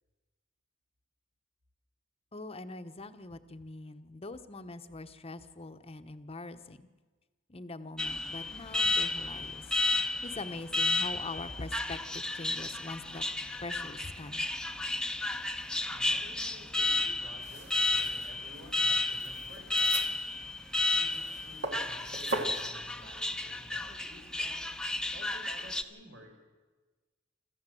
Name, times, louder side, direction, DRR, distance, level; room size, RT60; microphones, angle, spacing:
voice 1, 2.3-6.9 7.5-9.6 10.2-13.2 13.6-14.5, left 2 dB, 30° left, 9 dB, 1.0 m, -43 dB
Alarm, 8.0-25.8, left 2 dB, 5° left, 0.8 m, -32 dB
voice 2, 15.9-20.3 20.9-24.7 25.0-26.4, equal, 75° right, 2 dB, 5.5 m, -53 dB
sound 1, 17.4-22.7, right 3 dB, 55° right, 2.3 m, -41 dB
25.5 x 14.0 x 7.7 m, 1.3 s
head